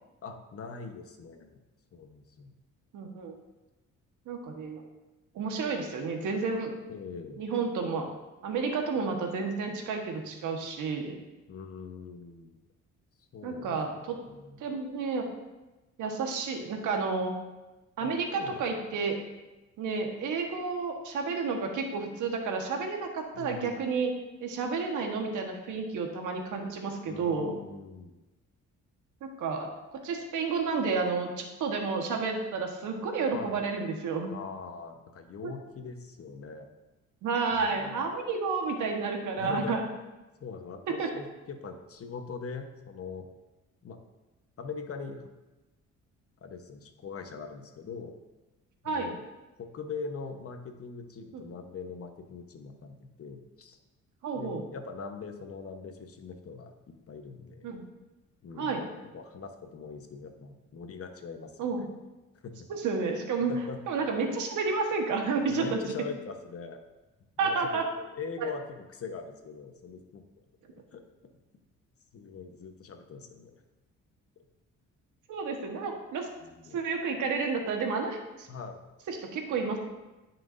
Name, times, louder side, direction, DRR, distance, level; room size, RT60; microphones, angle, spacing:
voice 1, 0.2-1.6 1.9-2.5 6.9-7.4 11.5-12.5 13.2-13.8 14.2-14.6 18.0-18.9 23.3-23.8 27.1-28.1 33.3-33.6 34.3-36.7 37.5-38.0 39.4-39.8 40.4-43.3 43.8-44.0 44.6-45.3 46.4-48.1 48.8-49.2 49.6-53.8 54.3-57.7 58.4-58.8 59.1-61.7 62.4-62.7 63.5-63.8 64.2-64.3 65.4-66.8 67.4-70.2 70.7-71.0 72.1-73.5 74.4-74.5 76.4-76.8 78.5-78.8, left 5 dB, 50° left, 5 dB, 1.1 m, -42 dB
voice 2, 2.9-3.4 4.2-4.8 5.3-6.7 7.4-8.2 8.4-11.2 13.4-14.2 14.6-15.3 16.0-17.3 18.0-19.2 19.8-24.1 24.4-27.5 29.2-34.3 35.4-35.5 37.2-39.9 40.9-41.1 48.8-49.1 51.3-51.4 54.2-54.6 57.6-57.8 58.6-58.8 61.6-61.8 62.7-63.5 63.9-65.8 67.4-67.9 68.4-68.5 75.3-76.3 76.7-78.5 79.1-79.8, right 4 dB, 80° right, 3 dB, 1.4 m, -31 dB
15.0 x 5.9 x 2.6 m, 1.1 s
cardioid pair, 90°, 30 cm